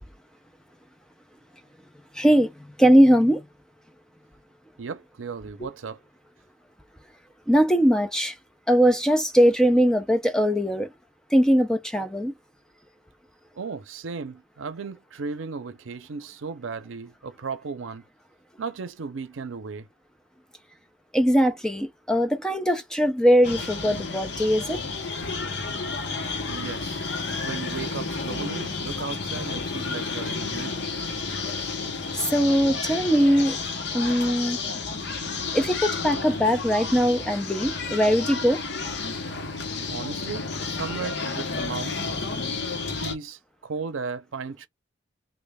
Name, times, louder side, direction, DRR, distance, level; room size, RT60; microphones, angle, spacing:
voice 1, 2.2-2.5 2.8-3.4 7.5-8.4 8.7-10.9 11.3-12.3 21.1-24.8 32.1-33.6 33.9-34.6 35.5-38.6, equal, 5° left, 0.5 m, -20 dB
voice 2, 4.8-6.0 13.6-18.0 18.6-19.9 26.5-27.1 27.4-30.9 39.9-42.3 43.0-44.7, right 5 dB, 85° right, 0.6 m, -35 dB
sound 1, 23.4-43.1, left 4 dB, 60° left, 0.8 m, -31 dB
3.2 x 2.2 x 3.4 m
head